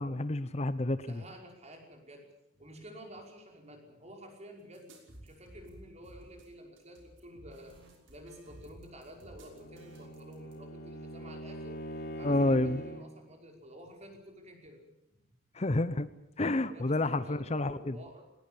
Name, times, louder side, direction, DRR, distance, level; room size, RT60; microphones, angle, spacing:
voice 1, 0.0-1.1 12.2-12.8 15.5-16.1 16.4-18.0, left 2 dB, 35° left, 14 dB, 0.8 m, -29 dB
voice 2, 1.0-2.3 2.6-4.9 5.2-7.7 8.1-11.8 12.2-14.8 16.7-18.2, equal, 35° right, 2 dB, 5.5 m, -50 dB
sound 1, 4.7-10.5, right 1 dB, 90° right, 5.9 m, -54 dB
Bowed string instrument, 9.3-13.2, equal, 55° left, 3.8 m, -43 dB
20.0 x 20.0 x 8.7 m, 0.85 s
head